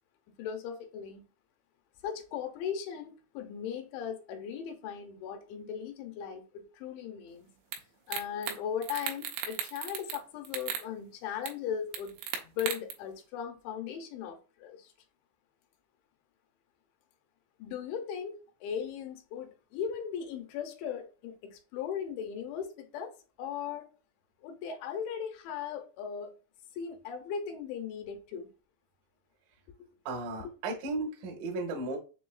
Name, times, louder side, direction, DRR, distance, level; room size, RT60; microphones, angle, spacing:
voice 1, 0.4-1.2 2.0-7.5 8.1-12.2 12.4-14.9 17.6-23.9 24.4-26.3 26.7-28.5 29.8-29.9, left 8 dB, 85° left, 3.0 m, -38 dB
sound 1, 7.7-7.8 8.1-8.6 8.8-10.2 10.5-10.8 11.5-11.6 11.9-12.9, right 7 dB, 90° right, 3.0 m, -36 dB
voice 2, 30.1-32.0, right 2 dB, 75° right, 2.1 m, -35 dB
7.0 x 2.7 x 2.4 m
omnidirectional pair, 5.3 m